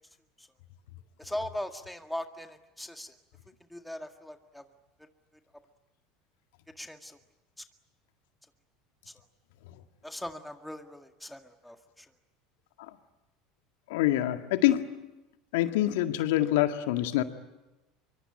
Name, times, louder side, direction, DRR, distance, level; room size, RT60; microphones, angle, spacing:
voice 1, 1.2-3.2 3.7-4.7 5.0-5.1 6.8-7.2 7.6-7.7 9.1-9.2 10.0-12.1, left 1 dB, 5° left, 5 dB, 1.9 m, -40 dB
voice 2, 13.9-15.1 15.5-17.2, left 14 dB, 75° left, 7 dB, 1.9 m, -26 dB
25.5 x 24.5 x 9.0 m, 1.0 s
hypercardioid pair, 80°, 0 cm